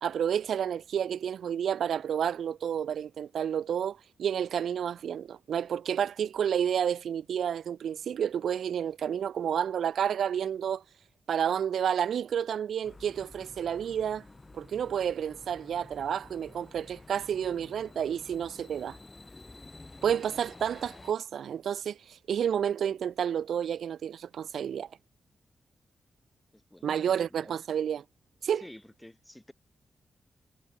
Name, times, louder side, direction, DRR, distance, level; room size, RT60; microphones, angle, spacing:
voice 1, 0.0-10.8 11.3-14.2 14.5-19.0 20.0-24.9 26.8-28.0 28.4-28.6, right 8 dB, 80° right, 0.4 m, -30 dB
sound 1, 12.8-21.1, left 2 dB, 25° left, 2.1 m, -51 dB
voice 2, 26.5-27.6 28.5-29.5, left 1 dB, 10° left, 7.6 m, -50 dB
cardioid pair, 70°, 0 cm